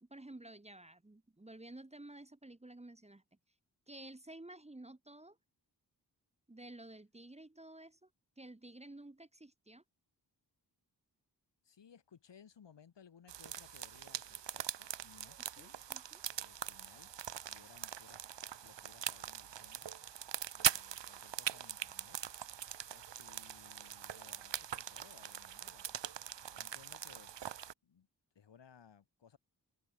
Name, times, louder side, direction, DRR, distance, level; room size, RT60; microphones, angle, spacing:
voice 1, 0.0-3.2 3.9-5.4 6.5-8.1 8.4-9.8 15.6-16.2, right 1 dB, 15° right, 1.3 m, -52 dB
voice 2, 11.6-15.8 16.4-17.1 17.4-18.2 18.6-19.9 20.5-22.2 22.9-27.3 27.8-28.1 28.4-29.4, left 7 dB, 85° left, 3.7 m, -62 dB
sound 1, 13.3-27.7, right 9 dB, 85° right, 1.3 m, -42 dB
open air
cardioid pair, 40°, 42 cm